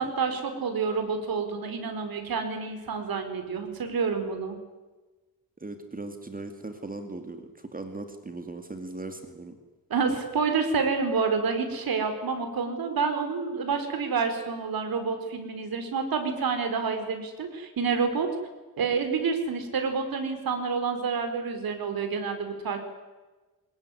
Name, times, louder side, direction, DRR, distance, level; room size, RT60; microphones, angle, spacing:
voice 1, 0.0-4.6 9.9-18.3 18.8-22.8, right 5 dB, 80° right, 7 dB, 4.5 m, -28 dB
voice 2, 5.6-9.6, right 2 dB, 25° right, 6 dB, 2.4 m, -38 dB
24.0 x 20.5 x 9.9 m, 1.2 s
wide cardioid pair, 130°, 35 cm